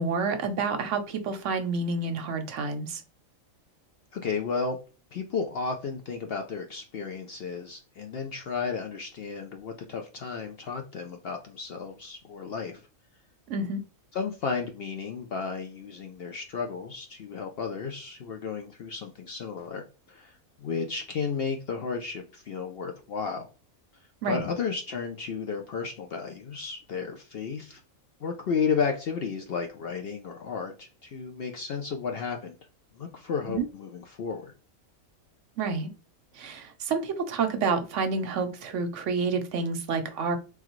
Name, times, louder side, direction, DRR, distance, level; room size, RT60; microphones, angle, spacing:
voice 1, 0.0-3.0 13.5-13.8 24.2-24.5 33.5-33.6 35.6-35.9 36.4-40.4, right 4 dB, 65° right, 7 dB, 0.9 m, -29 dB
voice 2, 4.1-4.8 5.1-12.8 14.1-23.5 24.3-27.8 28.2-32.6 32.9-34.5, left 5 dB, 65° left, 4 dB, 0.6 m, -33 dB
3.7 x 3.1 x 3.0 m, 0.33 s
omnidirectional pair, 1.5 m